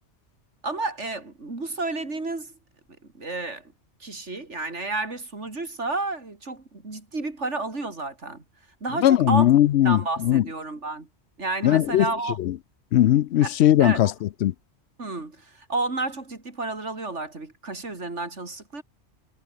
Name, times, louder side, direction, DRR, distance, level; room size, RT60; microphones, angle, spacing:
voice 1, 0.6-2.5 3.1-3.7 4.0-8.4 8.8-9.5 9.8-11.1 11.4-12.4 13.4-14.1 15.0-18.8, right 3 dB, 90° right, 3.9 m, -31 dB
voice 2, 9.0-10.4 11.6-12.1 12.4-12.5 12.9-14.5, left 12 dB, 75° left, 0.8 m, -19 dB
omnidirectional pair, 1.2 m